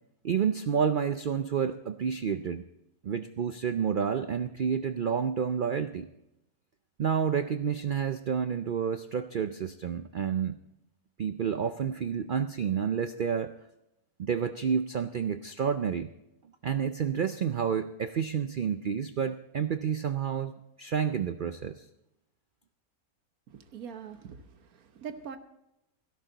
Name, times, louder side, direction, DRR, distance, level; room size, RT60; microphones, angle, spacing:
voice 1, 0.2-2.6 3.0-6.1 7.0-10.6 11.2-13.5 14.2-16.1 16.6-21.8, right 7 dB, 90° right, 10 dB, 0.4 m, -29 dB
voice 2, 23.5-25.4, right 7 dB, 70° right, 9 dB, 1.5 m, -43 dB
16.0 x 13.0 x 3.9 m, 0.89 s
omnidirectional pair, 1.6 m